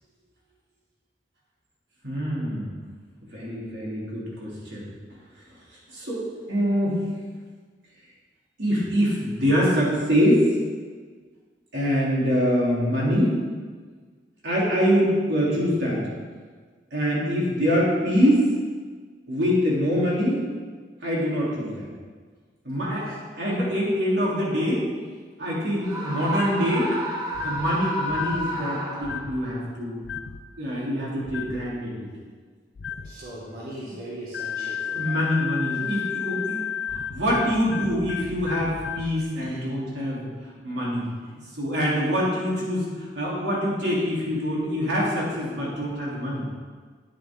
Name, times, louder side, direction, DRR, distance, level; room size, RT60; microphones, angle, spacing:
voice 1, 2.0-2.8 3.3-4.9 5.9-6.2 6.5-7.1 8.6-10.5 11.7-13.4 14.4-16.1 16.9-18.5 19.3-20.4 21.0-21.9 22.6-24.8 25.4-26.9 27.4-30.0 30.6-32.1 34.9-36.6 36.9-40.3 40.6-46.5, equal, 85° right, -6 dB, 3.3 m, -24 dB
Screaming, 25.8-29.5, equal, 25° right, 1.6 m, -31 dB
sound 1, 27.3-27.7 28.1-28.5 29.0-29.4 30.0-30.4 31.2-31.6 32.7-33.1 34.3-39.1, left 8 dB, 80° left, 0.5 m, -32 dB
voice 2, 32.9-35.2 35.7-35.9 39.4-39.6, right 1 dB, 55° right, -8 dB, 2.1 m, -40 dB
10.5 x 9.1 x 3.7 m, 1.5 s
head